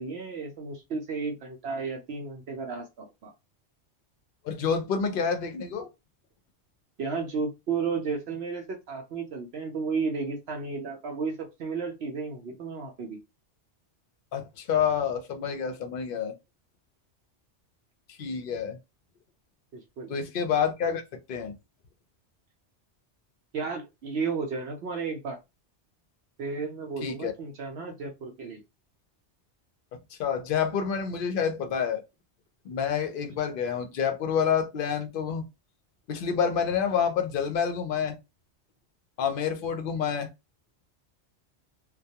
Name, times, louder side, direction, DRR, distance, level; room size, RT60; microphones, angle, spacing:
voice 1, 0.0-3.3 7.0-13.2 19.7-20.1 23.5-25.4 26.4-28.6, right 5 dB, 70° right, 0.8 m, -33 dB
voice 2, 4.4-5.9 14.3-16.3 18.2-18.8 20.1-21.0 21.3-21.5 27.0-27.3 30.2-32.0 32.7-35.4 36.1-38.2 39.2-40.3, left 7 dB, 60° left, 0.7 m, -28 dB
2.3 x 2.2 x 2.7 m
omnidirectional pair, 1.2 m